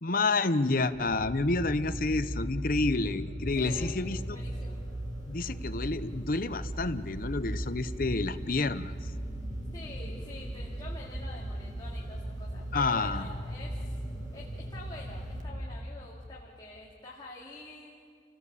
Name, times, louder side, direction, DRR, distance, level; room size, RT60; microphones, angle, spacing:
voice 1, 0.0-4.2 5.3-8.9 12.7-13.3, left 3 dB, 50° left, 11 dB, 0.8 m, -29 dB
sound 1, 0.9-16.2, equal, 5° left, 2.8 m, -38 dB
voice 2, 3.6-3.9 4.2-4.8 9.7-14.0 14.3-17.9, left 2 dB, 25° left, -4 dB, 2.4 m, -47 dB
sound 2, 3.6-15.4, right 3 dB, 40° right, 1.9 m, -43 dB
29.5 x 17.0 x 8.5 m, 2.1 s
head